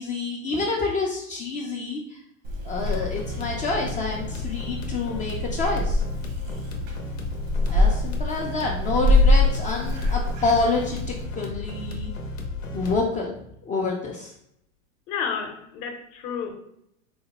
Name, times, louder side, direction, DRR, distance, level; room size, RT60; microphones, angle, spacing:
voice 1, 0.0-2.2 2.6-6.0 7.7-12.1 12.7-13.3 13.6-14.3, left 3 dB, 20° left, -1 dB, 0.4 m, -28 dB
Purr / Meow, 2.4-11.2, left 1 dB, 75° right, 1.1 m, -25 dB
sound 1, 2.8-13.0, left 3 dB, 90° left, 0.7 m, -34 dB
voice 2, 15.1-16.5, left 6 dB, 55° left, 4 dB, 0.8 m, -31 dB
3.9 x 2.1 x 2.9 m, 0.75 s
hypercardioid pair, 105°, 38 cm